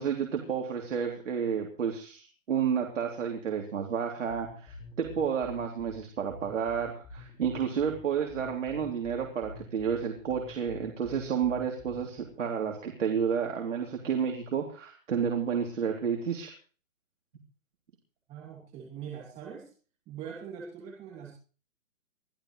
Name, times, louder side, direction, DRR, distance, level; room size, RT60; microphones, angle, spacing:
voice 1, 0.0-16.5, right 7 dB, 70° right, 1 dB, 3.4 m, -31 dB
sound 1, 4.3-12.3, left 2 dB, 15° left, 5.0 m, -47 dB
voice 2, 18.3-19.7 20.1-21.3, right 7 dB, 15° right, -3 dB, 2.6 m, -42 dB
23.0 x 14.0 x 3.3 m, 0.39 s
hypercardioid pair, 165°, 39 cm